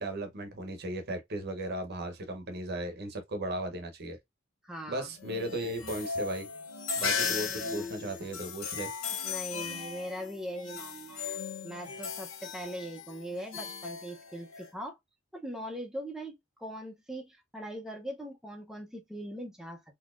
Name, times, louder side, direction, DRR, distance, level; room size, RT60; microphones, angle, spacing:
voice 1, 0.0-4.2 4.9-6.5 7.0-8.9, right 1 dB, 55° right, 0.8 m, -36 dB
voice 2, 4.6-5.1 7.2-7.9 9.2-15.0 15.3-19.8, equal, ahead, 0.6 m, -41 dB
sound 1, 5.2-14.7, left 6 dB, 80° left, 0.9 m, -37 dB
4.0 x 2.8 x 2.4 m
head